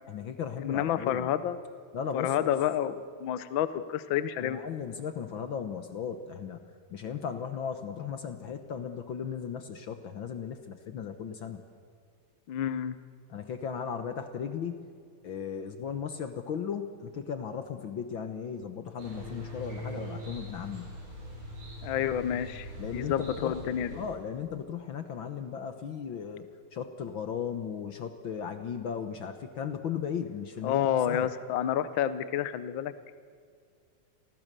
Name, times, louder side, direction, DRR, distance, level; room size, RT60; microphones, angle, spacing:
voice 1, 0.1-1.3 1.9-2.5 4.4-6.6 6.9-11.6 13.3-14.9 15.2-20.9 22.8-23.6 23.9-31.3, left 7 dB, 65° left, 8 dB, 1.3 m, -36 dB
voice 2, 0.6-1.6 2.1-4.6 12.5-13.0 21.8-24.0 30.6-33.1, left 10 dB, 80° left, 13 dB, 1.1 m, -29 dB
sound 1, 19.0-24.1, equal, 50° right, 8.7 m, -42 dB
28.5 x 20.0 x 6.8 m, 2.1 s
omnidirectional pair, 3.6 m